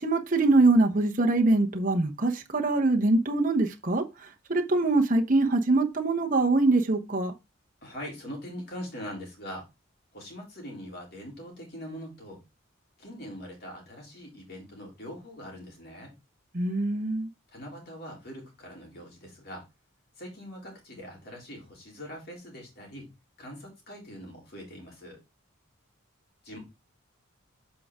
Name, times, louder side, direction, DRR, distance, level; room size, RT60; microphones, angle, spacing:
voice 1, 0.0-7.3 16.5-17.3, right 2 dB, 40° right, 1.0 m, -24 dB
voice 2, 7.8-9.7 10.1-12.4 13.0-16.1 17.5-19.7 20.2-23.1 23.4-25.2 26.4-26.6, equal, 50° left, 3.4 m, -42 dB
7.7 x 4.9 x 3.6 m
head